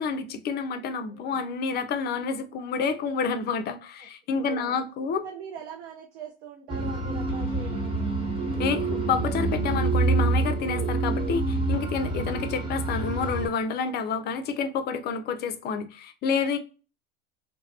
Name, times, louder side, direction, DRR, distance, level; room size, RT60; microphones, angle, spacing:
voice 1, 0.0-5.2 8.6-16.6, left 5 dB, 30° left, 0.4 m, -29 dB
voice 2, 1.1-1.4 4.0-4.1 4.3-4.8 5.2-8.3 12.3-12.6, right 7 dB, 80° right, 0.6 m, -43 dB
sound 1, 6.7-13.5, right 2 dB, 15° right, 0.9 m, -27 dB
2.6 x 2.2 x 2.2 m
hypercardioid pair, 95°, 33 cm